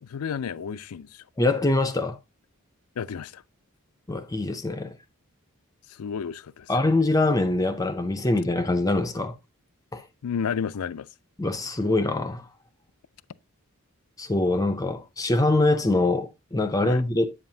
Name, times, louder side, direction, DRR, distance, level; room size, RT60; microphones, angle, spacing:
voice 1, 0.0-1.2 3.0-3.4 5.9-6.7 10.2-11.1 16.8-17.0, left 7 dB, 85° left, 0.4 m, -32 dB
voice 2, 1.4-2.2 4.1-4.9 6.7-9.4 9.9-10.0 11.4-12.5 14.2-17.3, left 2 dB, 15° left, 0.5 m, -24 dB
8.4 x 7.3 x 2.7 m
head